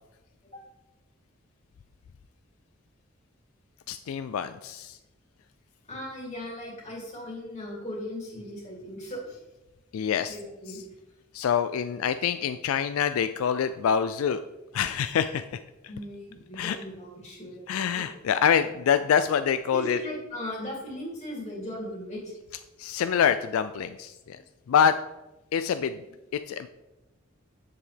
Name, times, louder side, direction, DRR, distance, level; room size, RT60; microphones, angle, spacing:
voice 1, 3.9-5.0 9.9-10.4 10.7-10.8 11.3-14.4 14.7-15.4 16.5-16.8 17.7-20.0 22.5-24.4 24.7-24.9 25.5-26.0 26.5-26.7, left 7 dB, 80° left, 11 dB, 0.3 m, -26 dB
voice 2, 5.9-9.4 10.2-10.8 15.9-18.0 19.7-22.3 24.3-24.4, left 1 dB, 35° left, -3 dB, 2.8 m, -38 dB
8.4 x 7.2 x 3.4 m, 1.0 s
head